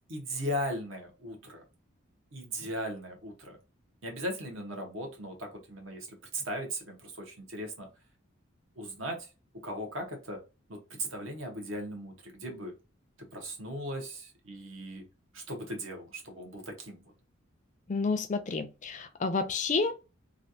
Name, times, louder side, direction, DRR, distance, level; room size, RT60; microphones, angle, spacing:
voice 1, 0.1-1.6 2.3-3.6 4.0-6.1 6.3-7.9 8.8-9.3 9.6-10.4 10.7-12.7 13.3-15.0 15.3-17.0, equal, 70° right, 1.2 m, -38 dB
voice 2, 17.9-20.1, left 4 dB, 35° left, 0.4 m, -30 dB
3.2 x 2.5 x 2.7 m
head